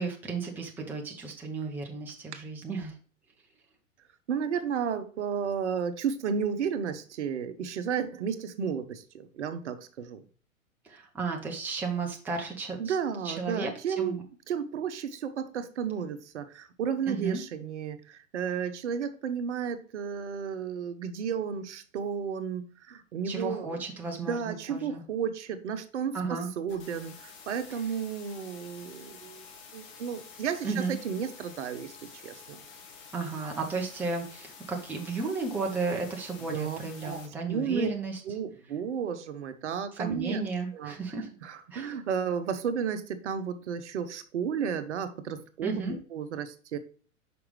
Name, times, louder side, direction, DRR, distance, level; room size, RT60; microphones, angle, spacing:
voice 1, 0.0-2.9 10.8-13.0 13.2-14.2 17.1-17.4 23.2-25.0 26.1-26.5 30.6-31.0 33.1-38.2 39.9-41.3 41.7-42.0 45.6-46.0, right 4 dB, 5° right, 0 dB, 0.7 m, -34 dB
voice 2, 4.3-10.2 12.8-14.2 14.5-23.8 24.2-29.4 29.7-31.9 32.2-32.6 36.5-37.2 37.5-37.9 38.2-40.4 40.7-40.9 41.4-46.8, right 7 dB, 55° right, 10 dB, 0.9 m, -33 dB
sound 1, 26.7-37.3, left 5 dB, 40° left, 1.5 m, -49 dB
5.9 x 5.1 x 3.2 m, 0.40 s
figure-of-eight pair, 105°, 41 cm